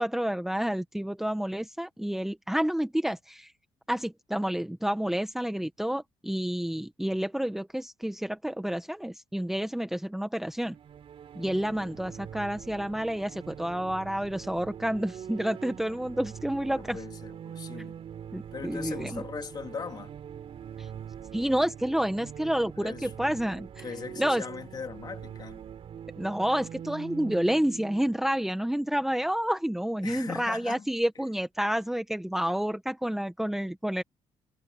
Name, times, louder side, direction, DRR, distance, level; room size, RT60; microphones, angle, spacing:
voice 1, 0.0-3.5 3.9-10.7 11.3-17.0 18.3-19.2 20.8-20.9 21.3-23.8 24.2-24.4 26.2-34.0, equal, 5° right, 1.0 m, -29 dB
sound 1, 10.6-29.3, right 9 dB, 55° right, 3.8 m, -43 dB
voice 2, 16.8-18.0 18.5-20.2 22.8-23.4 23.8-25.6 30.0-30.9, left 6 dB, 40° left, 3.1 m, -40 dB
cardioid pair, 120°, 11 cm